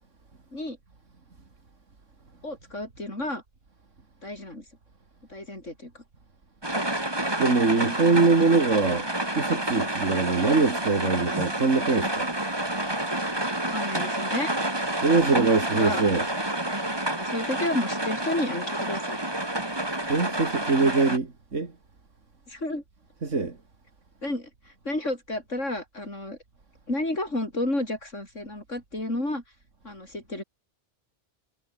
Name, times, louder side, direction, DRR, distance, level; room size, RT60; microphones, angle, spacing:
voice 1, 2.4-3.4 4.2-4.6 5.3-6.0 13.6-14.5 15.7-16.1 17.1-19.2 22.5-22.8 24.2-26.4 26.9-29.4 29.8-30.4, left 1 dB, 85° left, 8.0 m, -31 dB
sound 1, 6.6-21.2, right 1 dB, 20° right, 3.0 m, -29 dB
voice 2, 7.4-12.3 15.0-16.3 20.1-21.7 23.2-23.6, right 4 dB, 85° right, 3.1 m, -23 dB
omnidirectional pair, 1.2 m